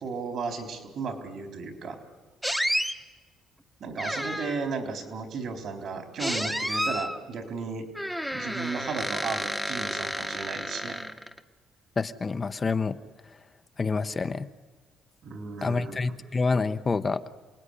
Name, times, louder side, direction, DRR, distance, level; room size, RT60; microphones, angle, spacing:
voice 1, 0.0-2.0 2.5-2.7 3.8-7.9 8.3-11.0 15.2-16.2, right 4 dB, 55° right, 6 dB, 4.1 m, -35 dB
sound 1, 2.4-2.9 4.0-4.7 6.2-7.2 7.9-11.4, equal, ahead, 1.2 m, -31 dB
voice 2, 12.0-13.0 13.8-14.5 15.6-17.2, left 4 dB, 25° left, 10 dB, 0.8 m, -27 dB
27.5 x 19.5 x 10.0 m, 1.3 s
cardioid pair, 125°, 0 cm